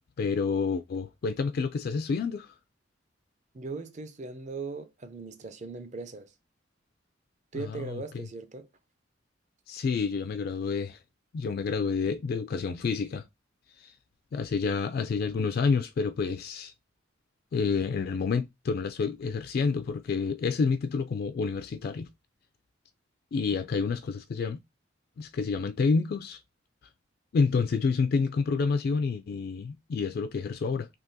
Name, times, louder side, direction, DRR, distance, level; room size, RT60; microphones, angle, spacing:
voice 1, 0.2-2.5 7.5-8.3 9.7-11.0 11.3-13.2 13.8-13.9 14.3-16.7 17.5-22.1 23.3-24.6 25.2-26.4 27.3-30.9, left 5 dB, 50° left, 0.3 m, -29 dB
voice 2, 3.5-6.3 7.5-8.7, right 4 dB, 40° right, 0.5 m, -39 dB
3.6 x 2.8 x 2.6 m
head